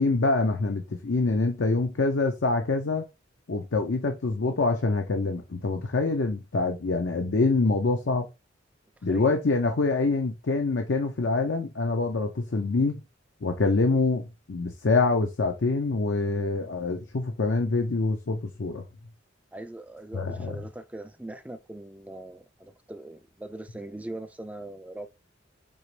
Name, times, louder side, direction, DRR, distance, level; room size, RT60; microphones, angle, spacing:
voice 1, 0.0-3.1 3.5-8.3 9.0-13.0 13.4-18.8 20.1-20.6, left 3 dB, 65° left, 0.6 m, -25 dB
voice 2, 19.5-25.1, right 1 dB, 5° right, 0.4 m, -41 dB
5.4 x 3.0 x 3.2 m
head